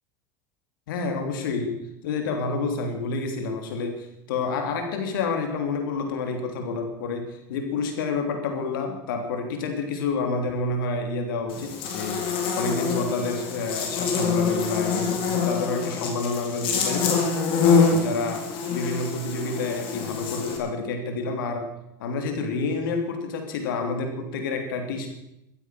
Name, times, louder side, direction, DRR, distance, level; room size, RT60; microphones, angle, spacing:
voice 1, 0.9-1.7 2.0-12.2 12.6-17.1 17.6-21.7 22.0-25.1, left 4 dB, 85° left, 5 dB, 3.1 m, -29 dB
Buzz, 11.5-20.6, left 5 dB, 55° left, 4.5 m, -25 dB
15.0 x 13.0 x 6.1 m, 0.84 s
supercardioid pair, 110°, 11 cm